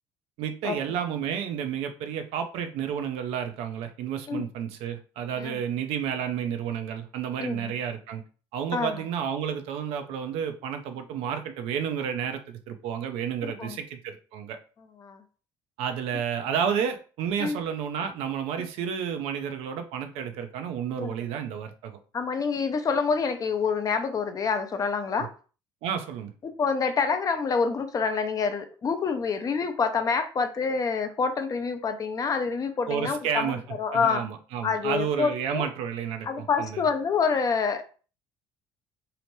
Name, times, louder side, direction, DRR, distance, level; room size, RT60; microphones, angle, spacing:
voice 1, 0.4-8.2 8.5-14.6 15.8-22.0 25.8-26.3 32.9-33.6 33.9-36.8, right 8 dB, 75° right, 7 dB, 0.5 m, -31 dB
voice 2, 7.4-7.7 8.7-9.0 13.4-13.8 15.0-15.2 17.4-17.6 21.0-21.2 22.1-25.3 26.4-34.2 34.6-35.7 36.2-38.0, left 5 dB, 35° left, 8 dB, 0.5 m, -27 dB
2.8 x 2.1 x 3.1 m, 0.37 s
supercardioid pair, 80°, 10 cm